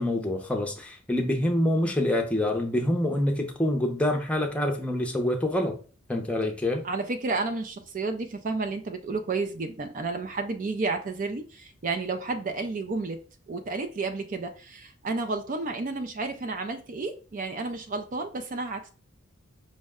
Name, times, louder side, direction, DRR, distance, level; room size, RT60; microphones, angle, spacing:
voice 1, 0.0-5.8 6.1-6.8, left 1 dB, 5° left, 0.6 m, -26 dB
voice 2, 6.8-18.9, right 3 dB, 40° right, 0.4 m, -31 dB
5.2 x 2.1 x 3.5 m
head